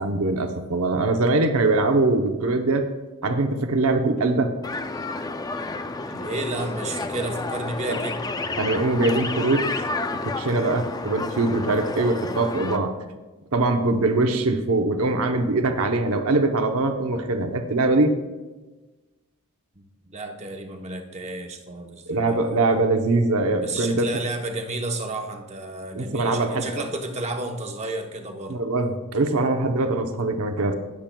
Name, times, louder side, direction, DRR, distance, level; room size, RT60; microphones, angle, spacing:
voice 1, 0.0-2.8 3.2-4.5 7.9-8.0 8.6-9.7 10.2-12.9 13.5-18.1 22.1-24.2 25.9-26.8 28.5-30.7, right 2 dB, 70° right, 6 dB, 0.8 m, -22 dB
sound 1, 4.6-12.8, left 3 dB, 15° left, 0.4 m, -30 dB
voice 2, 6.1-8.2 19.8-22.4 23.6-28.6, right 2 dB, 30° right, 3 dB, 0.9 m, -32 dB
19.0 x 7.4 x 2.3 m, 1.2 s
head